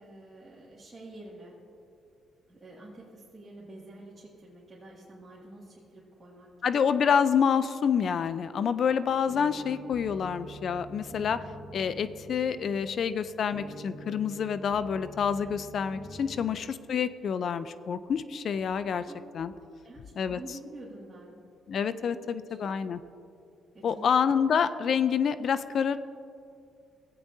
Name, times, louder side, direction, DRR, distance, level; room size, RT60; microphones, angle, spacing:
voice 1, 0.0-1.6 2.5-6.5 10.2-10.3 16.3-16.6 19.0-19.2 19.8-21.4 22.1-22.6 23.7-24.2 24.5-24.6, right 2 dB, 20° right, -7 dB, 2.2 m, -48 dB
voice 2, 6.6-11.4 11.7-19.0 19.3-19.5 20.2-20.4 21.7-23.0 23.8-26.0, left 7 dB, 60° left, 13 dB, 0.4 m, -27 dB
sound 1, 9.3-16.5, right 1 dB, 10° left, 1.2 m, -46 dB
16.5 x 8.6 x 2.7 m, 2.5 s
cardioid pair, 90°, 0 cm